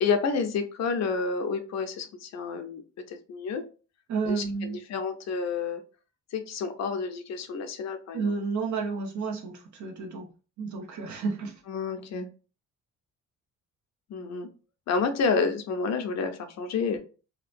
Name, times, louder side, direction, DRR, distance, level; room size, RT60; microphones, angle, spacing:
voice 1, 0.0-2.8 3.1-3.6 4.3-5.8 6.3-8.3 11.7-12.3 14.1-14.5 14.9-17.0, left 5 dB, 60° left, 0.6 m, -29 dB
voice 2, 4.1-4.8 8.1-10.3 10.6-11.6, right 4 dB, 70° right, 0.9 m, -31 dB
2.9 x 2.2 x 2.5 m
cardioid pair, 90°, 30 cm